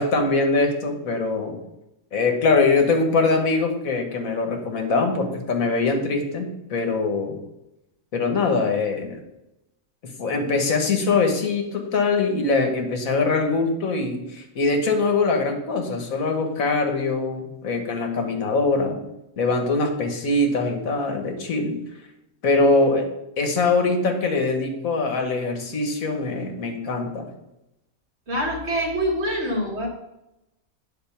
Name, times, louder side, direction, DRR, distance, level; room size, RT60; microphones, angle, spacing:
voice 1, 0.0-1.6 2.1-7.4 8.1-9.2 10.2-19.0 19.4-21.8 22.4-23.1 23.4-27.3, left 3 dB, 80° left, 4 dB, 1.6 m, -22 dB
voice 2, 28.3-29.9, equal, 50° right, 0 dB, 1.8 m, -25 dB
9.4 x 4.0 x 5.7 m, 0.91 s
omnidirectional pair, 1.4 m